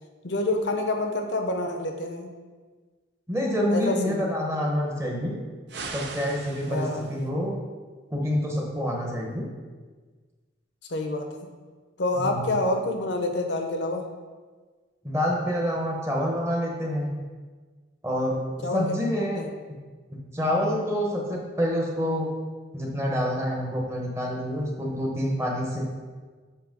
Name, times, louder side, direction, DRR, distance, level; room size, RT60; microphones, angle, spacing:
voice 1, 0.2-2.3 3.7-4.3 6.7-7.1 10.9-11.3 12.0-14.1 18.6-18.9 19.4-19.5, left 2 dB, 65° left, 4 dB, 0.7 m, -27 dB
voice 2, 3.3-5.3 5.9-7.6 8.1-9.5 12.2-12.6 15.0-17.1 18.0-19.4 20.3-22.3 22.7-25.8, equal, 15° right, -1 dB, 0.9 m, -27 dB
sound 1, 5.7-7.3, right 4 dB, 60° right, 0.6 m, -39 dB
7.7 x 2.9 x 5.2 m, 1.4 s
head